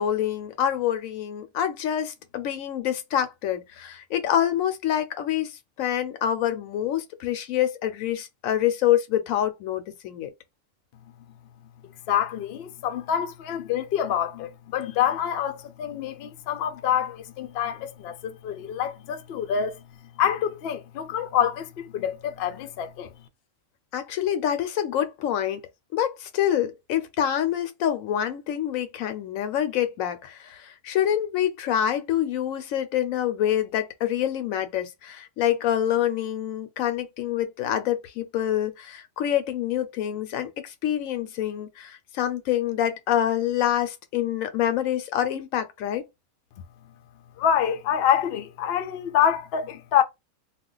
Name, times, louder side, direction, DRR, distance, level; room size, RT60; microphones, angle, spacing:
voice 1, 0.0-5.5 5.8-10.3 23.9-25.6 25.9-46.0, left 10 dB, 85° left, 1.0 m, -26 dB
voice 2, 12.1-19.8 20.2-23.1 47.4-50.0, left 9 dB, 65° left, 0.7 m, -26 dB
2.4 x 2.1 x 3.8 m
omnidirectional pair, 1.4 m